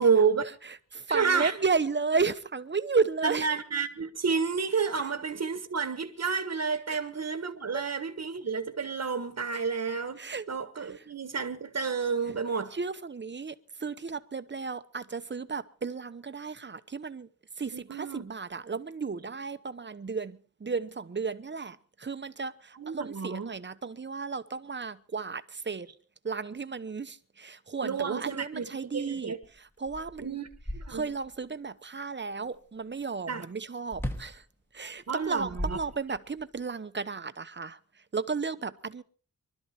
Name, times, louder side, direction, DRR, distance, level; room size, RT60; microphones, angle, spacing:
voice 1, 0.0-0.4 1.1-1.5 3.2-10.2 10.5-12.7 17.7-18.2 22.8-23.5 27.8-28.7 28.9-29.4 30.2-30.5 30.7-31.1 33.3-33.4 35.1-35.8, right 5 dB, 50° right, 1.4 m, -30 dB
voice 2, 0.6-3.5 6.9-7.0 7.7-7.9 10.2-10.5 11.0-11.1 12.3-12.4 12.7-17.3 17.6-25.9 26.2-30.4 30.9-34.4 34.7-37.8 38.1-39.0, right 4 dB, 35° right, 0.9 m, -33 dB
sound 1, 29.4-29.5 29.9-31.4 33.9-34.4 35.2-36.4, equal, 5° left, 1.4 m, -37 dB
24.5 x 12.5 x 4.3 m
wide cardioid pair, 140°, 33 cm